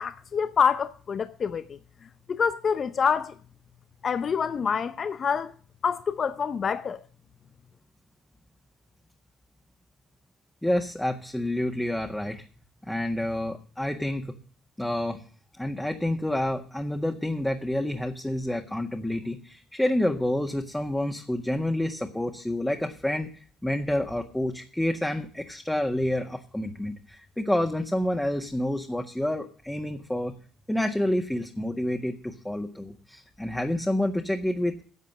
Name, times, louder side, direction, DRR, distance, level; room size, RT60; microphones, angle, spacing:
voice 1, 0.0-1.8 2.3-3.3 4.0-5.5 5.8-7.0, left 6 dB, 50° left, 0.7 m, -26 dB
voice 2, 10.6-12.4 12.9-14.3 14.8-15.2 15.6-30.3 30.7-34.8, left 1 dB, 10° left, 1.6 m, -28 dB
11.0 x 7.4 x 7.5 m
hypercardioid pair, 55°, 0 cm